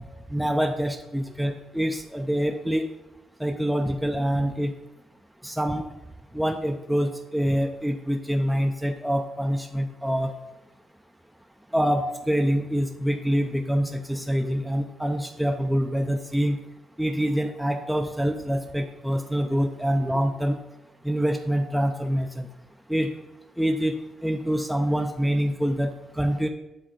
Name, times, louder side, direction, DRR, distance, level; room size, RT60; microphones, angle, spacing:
voice 1, 0.3-2.9 3.4-4.7 5.4-5.8 6.3-10.3 11.7-16.6 17.0-20.6 21.0-22.5 22.9-23.1 23.6-24.0 24.2-26.5, equal, ahead, 4 dB, 0.5 m, -25 dB
7.5 x 3.7 x 5.8 m, 0.99 s
cardioid pair, 90°, 0 cm